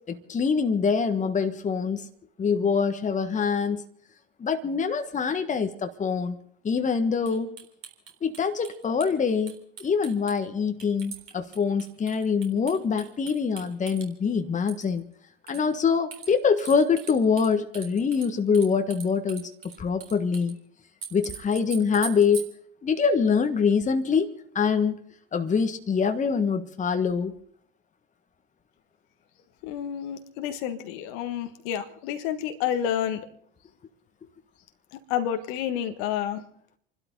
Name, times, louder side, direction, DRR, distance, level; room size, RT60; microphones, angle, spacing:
voice 1, 0.1-2.1 2.4-3.8 4.4-6.4 6.6-7.5 8.2-9.5 9.8-15.1 15.5-19.5 19.8-20.6 21.1-22.5 22.8-25.0 25.3-27.3, left 5 dB, 25° left, 7 dB, 1.5 m, -24 dB
sound 1, 7.3-9.1 9.5-10.3 10.8-14.0 14.6-15.0 15.5-15.6 16.1-17.5 17.7-20.5 21.0-22.5, right 6 dB, 45° right, 3.9 m, -41 dB
voice 2, 29.6-33.3 35.1-36.4, left 10 dB, 60° left, 7 dB, 1.6 m, -29 dB
29.5 x 12.5 x 3.9 m, 0.63 s
hypercardioid pair, 70°, 29 cm